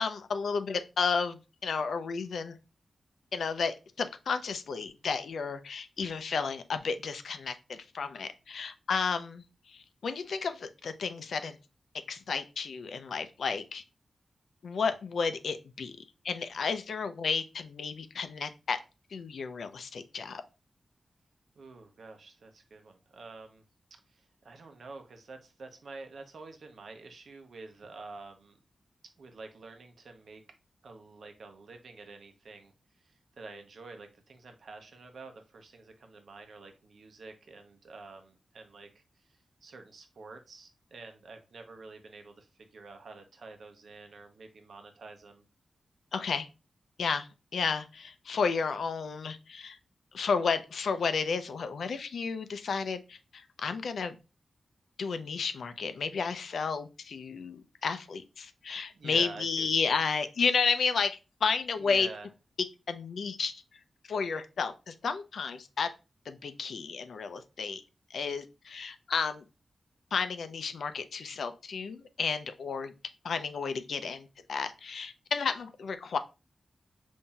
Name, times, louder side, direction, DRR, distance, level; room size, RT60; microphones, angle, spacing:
voice 1, 0.0-2.5 3.3-9.4 9.7-11.6 12.1-13.8 14.6-15.9 16.2-18.8 19.1-20.4 46.1-46.5 47.0-49.8 50.1-54.1 55.0-62.1 62.9-63.5 64.1-65.9 66.3-67.8 68.1-69.4 70.1-72.9 73.2-76.2, left 5 dB, 85° left, 10 dB, 0.4 m, -32 dB
voice 2, 21.6-23.6 24.1-28.6 29.2-30.4 30.8-32.7 33.0-45.4 58.9-60.0 61.8-62.3, right 3 dB, 65° right, 5 dB, 0.7 m, -48 dB
5.5 x 2.6 x 2.2 m, 0.28 s
wide cardioid pair, 170°, 0 cm